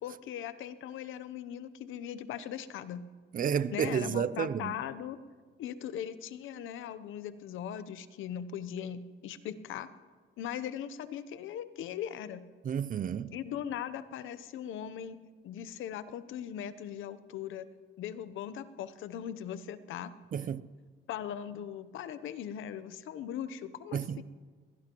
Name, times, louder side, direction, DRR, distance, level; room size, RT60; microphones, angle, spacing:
voice 1, 0.0-3.0 3.7-5.2 5.6-9.9 10.4-12.4 13.3-15.2 15.4-17.7 18.0-20.1 21.1-24.2, left 9 dB, 80° left, 0.8 m, -39 dB
voice 2, 3.3-4.7 12.6-13.3 20.3-20.6 23.9-24.2, right 8 dB, 45° right, 0.5 m, -31 dB
22.0 x 17.0 x 3.0 m
cardioid pair, 90°, 20 cm